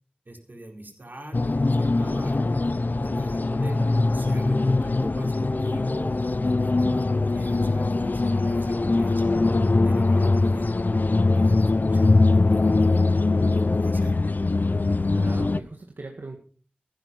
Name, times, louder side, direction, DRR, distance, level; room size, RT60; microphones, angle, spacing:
voice 1, 0.3-2.5 3.0-3.8 4.1-9.3 9.8-10.7 11.3-13.1 13.5-14.2, right 1 dB, 65° right, 2 dB, 4.6 m, -40 dB
sound 1, 1.3-15.6, left 3 dB, 60° left, 0.6 m, -22 dB
voice 2, 3.5-4.0 9.0-9.7 15.1-16.4, right 2 dB, 90° right, 1 dB, 1.9 m, -40 dB
15.0 x 11.5 x 5.5 m, 0.43 s
wide cardioid pair, 55°, 3 cm